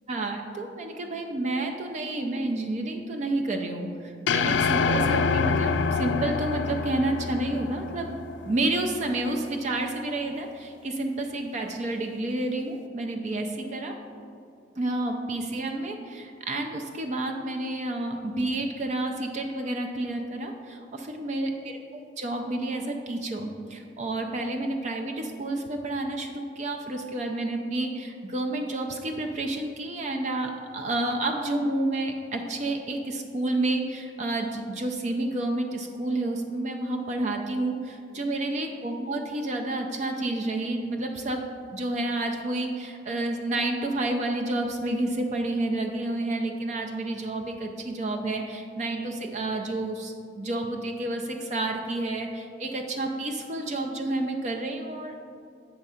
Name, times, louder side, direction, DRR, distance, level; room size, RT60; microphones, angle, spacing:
voice 1, 0.1-8.2 8.4-13.9 14.8-41.4 41.7-55.2, right 2 dB, 40° right, 3 dB, 0.4 m, -30 dB
sound 1, 4.3-8.7, left 5 dB, 80° left, 0.3 m, -26 dB
7.4 x 3.5 x 5.6 m, 2.5 s
head